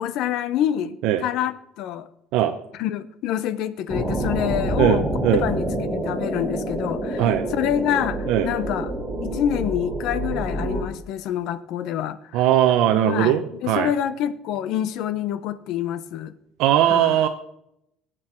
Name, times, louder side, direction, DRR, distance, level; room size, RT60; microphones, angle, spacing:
voice 1, 0.0-2.1 2.8-5.0 5.3-7.3 7.5-8.9 9.2-12.4 13.1-16.3 16.9-17.1, left 10 dB, 55° left, 16 dB, 0.6 m, -27 dB
sound 1, 3.9-10.8, right 1 dB, ahead, 2.3 m, -27 dB
voice 2, 4.8-5.4 7.2-7.4 8.3-8.5 12.3-13.9 16.6-17.3, right 11 dB, 60° right, 7 dB, 0.6 m, -19 dB
17.5 x 7.6 x 4.4 m, 0.79 s
cardioid pair, 170°, 0 cm